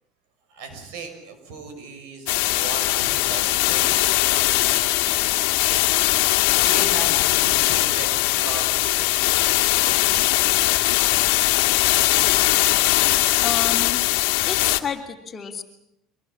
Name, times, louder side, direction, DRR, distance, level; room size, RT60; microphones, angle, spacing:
voice 1, 0.5-5.5 6.6-10.3, right 4 dB, 80° right, 7 dB, 6.2 m, -37 dB
sound 1, 2.3-14.8, left 19 dB, 80° left, 1.6 m, -20 dB
voice 2, 13.4-14.0 14.4-15.6, left 6 dB, 30° left, 4 dB, 2.9 m, -30 dB
24.5 x 20.0 x 8.7 m, 0.81 s
cardioid pair, 125°, 0 cm